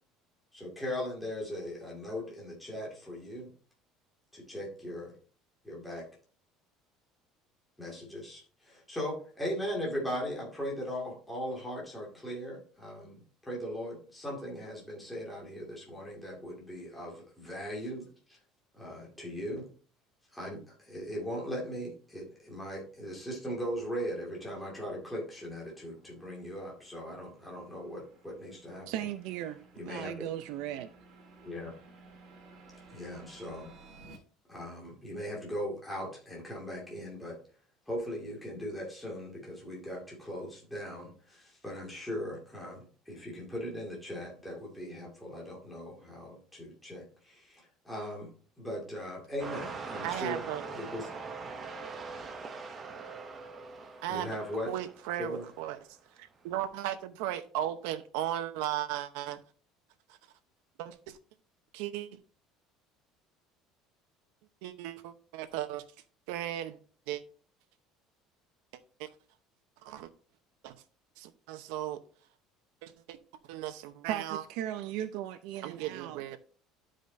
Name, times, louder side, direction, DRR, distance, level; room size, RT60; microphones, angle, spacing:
voice 1, 0.5-3.5 4.3-5.1 5.6-6.0 7.8-18.4 18.7-19.7 20.3-28.9 29.7-30.1 31.4-31.8 32.9-33.7 34.5-37.4 37.9-48.3 48.6-51.1 54.1-54.7 55.2-55.5, equal, 5° left, 2.2 m, -39 dB
sound 1, 22.9-34.2, right 3 dB, 40° right, 1.8 m, -57 dB
voice 2, 28.9-30.9 74.1-76.2, right 11 dB, 65° right, 0.5 m, -37 dB
sound 2, 49.4-55.8 56.5-56.6, right 4 dB, 20° right, 0.8 m, -42 dB
voice 3, 50.0-50.6 54.0-54.4 54.7-55.8 56.2-59.4 60.1-60.2 60.8-61.2 61.7-62.2 64.6-65.8 66.3-66.8 67.1-67.2 69.0-69.1 69.8-70.1 70.6-70.8 71.2-72.0 72.8-73.2 73.5-74.4 75.6-76.4, right 12 dB, 90° right, 0.8 m, -36 dB
12.0 x 5.0 x 2.7 m
cardioid pair, 170°, 0 cm